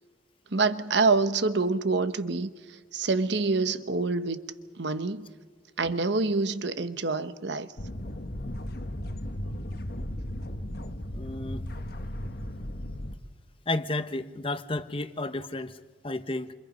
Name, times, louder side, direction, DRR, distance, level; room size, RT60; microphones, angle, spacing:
voice 1, 0.5-2.5 2.9-4.4 4.8-5.3 5.8-7.7, right 3 dB, 60° right, 1.1 m, -26 dB
sound 1, 7.8-13.2, left 1 dB, 50° left, 1.4 m, -36 dB
voice 2, 11.1-11.7 13.7-16.5, left 2 dB, 30° left, 1.0 m, -32 dB
28.5 x 27.5 x 5.3 m
head